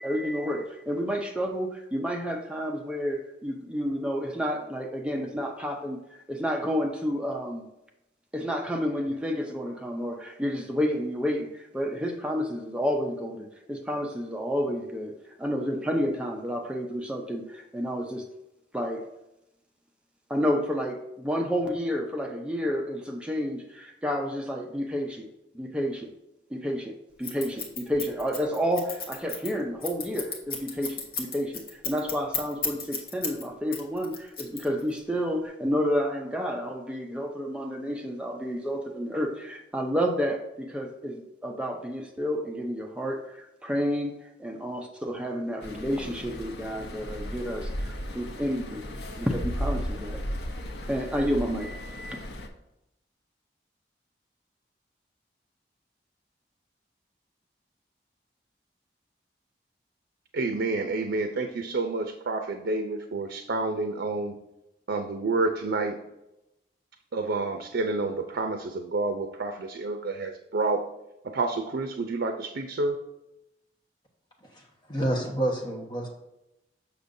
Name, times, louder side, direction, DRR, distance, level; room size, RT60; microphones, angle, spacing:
voice 1, 0.0-6.0 6.3-7.7 8.3-15.1 15.4-18.3 18.7-19.0 20.3-25.3 25.5-26.1 26.5-48.9 49.2-50.2 50.9-52.2, equal, 5° right, 2 dB, 0.5 m, -30 dB
Scissors, 27.2-33.4 33.7-35.0, left 5 dB, 55° left, 1.1 m, -33 dB
sound 1, 45.6-52.5, equal, 75° left, 0.7 m, -35 dB
voice 2, 60.3-64.4 64.9-66.0 67.1-70.9 71.2-73.0, right 3 dB, 80° right, 6 dB, 0.5 m, -29 dB
voice 3, 74.5-76.1, right 1 dB, 25° left, -1 dB, 1.1 m, -29 dB
6.7 x 6.1 x 2.7 m, 0.91 s
head